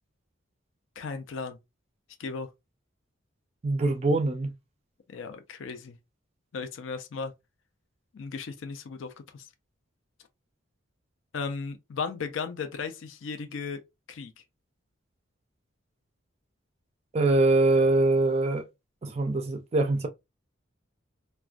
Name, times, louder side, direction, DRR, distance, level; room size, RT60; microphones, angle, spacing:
voice 1, 1.0-1.6 2.2-2.5 5.1-6.0 6.5-7.3 8.1-9.5 11.3-13.8 14.1-14.3, left 5 dB, 75° left, 0.4 m, -36 dB
voice 2, 3.6-4.5 17.1-18.6 19.0-20.1, right 2 dB, 30° right, 0.3 m, -23 dB
2.4 x 2.1 x 2.4 m
head